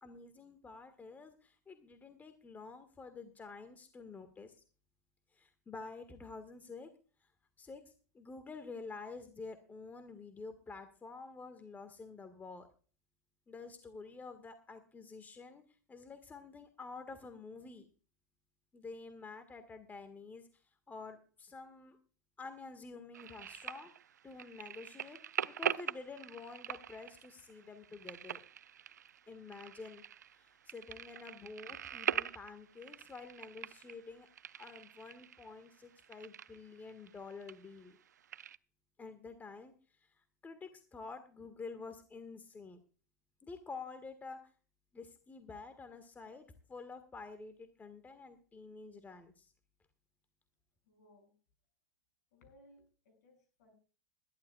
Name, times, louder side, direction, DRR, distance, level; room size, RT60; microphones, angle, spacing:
voice 1, 0.0-4.6 5.3-6.9 7.2-7.3 7.6-7.8 8.1-12.7 13.5-15.6 15.9-17.9 18.7-20.6 20.9-22.0 22.4-23.9 24.2-28.4 29.3-30.0 30.4-34.3 34.5-38.0 39.0-42.8 43.4-44.5 44.9-49.5, left 4 dB, 20° left, 9 dB, 1.7 m, -49 dB
sound 1, 23.1-38.6, right 9 dB, 90° right, 0.4 m, -43 dB
voice 2, 50.8-51.3 52.3-53.7, left 1 dB, 70° left, 5 dB, 6.6 m, -64 dB
21.0 x 11.5 x 2.4 m, 0.38 s
hypercardioid pair, 95°, 9 cm